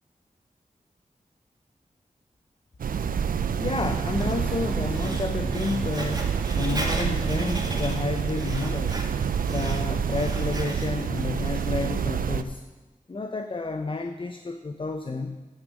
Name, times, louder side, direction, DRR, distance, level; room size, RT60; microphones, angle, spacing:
sound 1, 2.8-12.4, right 7 dB, 80° right, 0.4 m, -28 dB
Writing, 3.4-12.1, right 1 dB, 30° right, 1.6 m, -38 dB
voice 1, 3.6-9.1 9.4-12.6 13.1-15.5, left 3 dB, 35° left, 7 dB, 0.5 m, -30 dB
sound 2, 3.8-6.5, right 1 dB, 5° right, 0.6 m, -38 dB
9.8 x 5.3 x 6.3 m, 1.2 s
cardioid pair, 50°, 14 cm